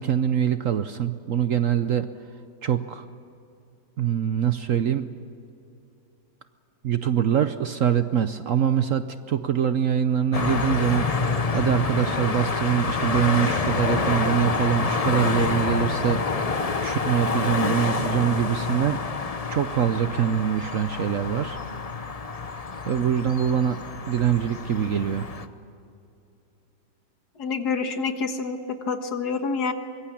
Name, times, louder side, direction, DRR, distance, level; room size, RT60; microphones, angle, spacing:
voice 1, 0.0-2.1 2.6-3.1 4.0-5.1 6.8-16.2 16.8-19.0 19.5-21.6 22.9-23.8 24.1-25.3, right 9 dB, 60° right, 10 dB, 0.9 m, -24 dB
sound 1, 10.3-25.5, left 4 dB, 30° left, 0.7 m, -27 dB
voice 2, 27.4-29.7, left 4 dB, 65° left, 7 dB, 1.9 m, -27 dB
24.5 x 21.5 x 8.6 m, 2.7 s
omnidirectional pair, 1.9 m